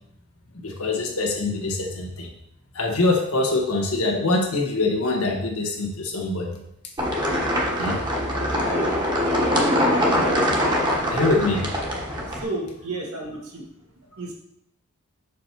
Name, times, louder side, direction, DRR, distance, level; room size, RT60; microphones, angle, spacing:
voice 1, 0.6-2.3 2.7-6.6 7.8-8.0 8.4-8.9 11.1-11.7 12.3-12.5, left 2 dB, 85° left, 2 dB, 1.4 m, -24 dB
sound 1, 7.0-12.4, equal, 20° right, 1.2 m, -23 dB
voice 2, 12.3-13.6 14.2-14.3, right 2 dB, 80° right, -1 dB, 1.8 m, -32 dB
5.8 x 5.1 x 4.5 m, 0.76 s
head